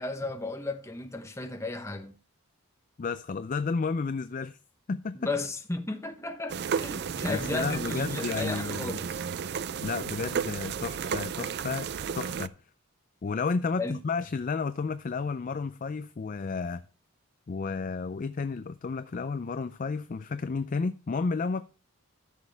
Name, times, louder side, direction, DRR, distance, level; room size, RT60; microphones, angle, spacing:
voice 1, 0.0-2.1 5.2-9.2 13.8-14.0, left 2 dB, 15° left, 0.9 m, -34 dB
voice 2, 3.0-4.6 4.9-5.3 7.3-9.0 9.8-12.5 13.2-16.9 17.5-21.7, left 4 dB, 40° left, 0.4 m, -32 dB
sound 1, 6.5-12.5, right 7 dB, 50° right, 0.4 m, -33 dB
14.0 x 6.4 x 3.4 m
head